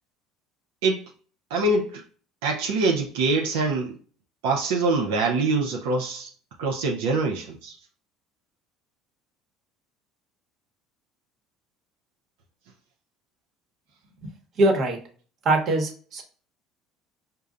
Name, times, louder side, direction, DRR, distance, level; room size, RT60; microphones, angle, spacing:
voice 1, 1.5-2.0 2.4-4.0 4.4-6.3 6.6-7.8, right 3 dB, 90° right, 0.5 m, -24 dB
voice 2, 14.6-15.0 15.4-16.2, right 2 dB, 50° right, 1.0 m, -22 dB
5.3 x 2.2 x 2.5 m
supercardioid pair, 105°, 0 cm